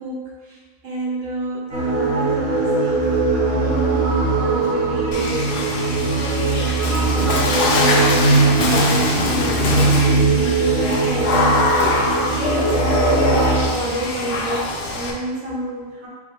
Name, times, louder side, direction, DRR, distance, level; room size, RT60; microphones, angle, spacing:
voice 1, 0.0-5.4 5.9-11.6 12.2-16.1, right 1 dB, 70° right, -7 dB, 1.3 m, -29 dB
sound 1, 1.7-13.6, right 3 dB, 40° right, 0.8 m, -20 dB
Water / Splash splatter, 5.1-15.1, left 2 dB, 65° left, 0.8 m, -22 dB
3.6 x 2.0 x 4.3 m, 1.6 s
omnidirectional pair, 1.0 m